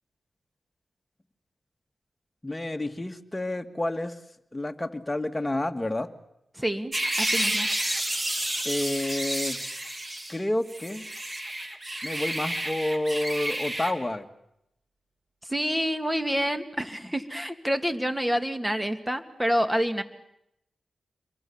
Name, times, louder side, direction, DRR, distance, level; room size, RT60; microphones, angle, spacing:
voice 1, 2.4-4.2 4.5-6.1 8.6-9.6 10.3-11.0 12.0-14.2, left 1 dB, 20° left, 5 dB, 2.0 m, -29 dB
voice 2, 6.6-7.7 15.4-20.0, equal, 10° right, 9 dB, 2.2 m, -28 dB
sound 1, 6.9-10.4 10.7-13.9, right 1 dB, 30° right, 3.1 m, -30 dB
27.5 x 23.0 x 7.2 m, 0.82 s
cardioid pair, 60°, 0 cm